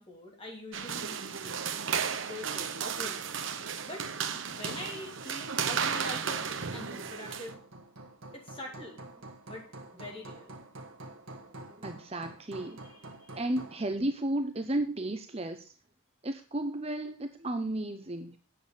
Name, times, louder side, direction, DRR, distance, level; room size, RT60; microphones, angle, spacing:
voice 1, 0.0-1.7 2.0-3.4 3.8-4.1 4.4-7.6 8.3-9.0 9.5-9.6 9.9-10.6 12.6-13.4, left 1 dB, 25° left, 0 dB, 3.3 m, -44 dB
sound 1, 0.7-7.5, right 7 dB, 60° right, 0.9 m, -34 dB
Hammer, 4.2-13.9, right 2 dB, 75° right, 1.6 m, -48 dB
voice 2, 11.5-12.8 13.4-15.7 16.2-18.4, right 1 dB, 30° right, 7 dB, 0.8 m, -33 dB
8.9 x 7.0 x 7.0 m, 0.37 s
head